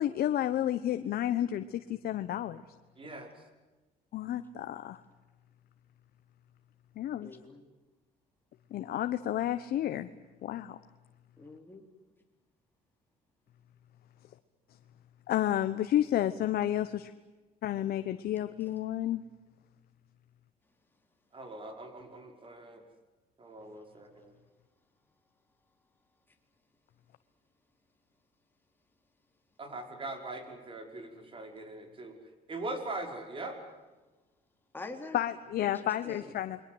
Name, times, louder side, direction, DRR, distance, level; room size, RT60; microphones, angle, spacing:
voice 1, 0.0-2.6 4.1-5.0 7.0-7.3 8.7-10.1 10.4-10.8 15.3-17.1 17.6-19.2 35.1-36.6, left 12 dB, 65° left, 10 dB, 1.1 m, -31 dB
voice 2, 3.0-3.3 21.3-22.8 23.4-24.3 29.6-32.2 32.5-33.6, right 2 dB, 30° right, 5 dB, 5.5 m, -41 dB
voice 3, 7.2-7.6 11.4-11.8 34.7-35.2 35.6-36.3, left 3 dB, 10° left, 3 dB, 3.7 m, -45 dB
29.0 x 22.0 x 7.9 m, 1.2 s
cardioid pair, 110°, 17 cm